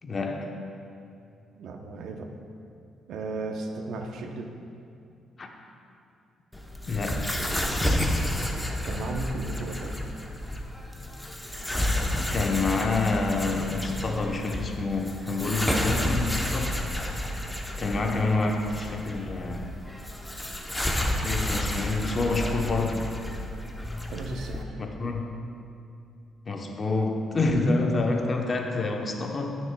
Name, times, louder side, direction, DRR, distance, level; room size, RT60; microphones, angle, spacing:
voice 1, 0.0-0.5 5.4-5.5 6.9-7.3 10.9-11.1 12.3-16.8 17.8-19.7 21.2-23.1 24.8-25.3 26.5-29.6, left 3 dB, 40° left, 2 dB, 0.8 m, -27 dB
voice 2, 1.6-2.3 3.1-4.5 8.8-10.0 24.1-24.7, right 3 dB, 75° right, 4 dB, 0.7 m, -35 dB
sound 1, 6.5-24.6, left 1 dB, 5° left, 0.7 m, -31 dB
13.0 x 6.2 x 2.2 m, 2.6 s
cardioid pair, 90°, 0 cm